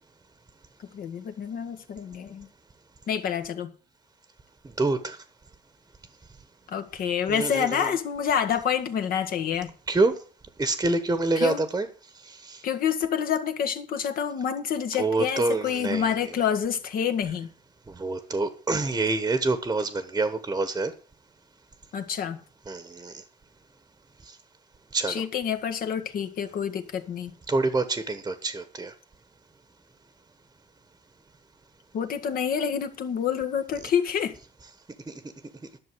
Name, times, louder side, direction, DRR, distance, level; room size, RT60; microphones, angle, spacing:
voice 1, 0.9-2.5 3.1-3.7 6.7-9.7 11.4-11.6 12.6-17.5 21.9-22.4 25.1-27.3 31.9-34.3, left 8 dB, 60° left, 1.7 m, -28 dB
voice 2, 4.8-5.2 7.3-7.9 9.9-10.1 10.6-11.9 12.2-12.6 14.9-16.3 17.9-20.9 22.7-23.2 24.3-24.4 24.9-25.2 27.5-28.9 35.1-35.2, right 3 dB, 20° right, 1.2 m, -27 dB
11.5 x 6.5 x 7.7 m
cardioid pair, 110°, 17 cm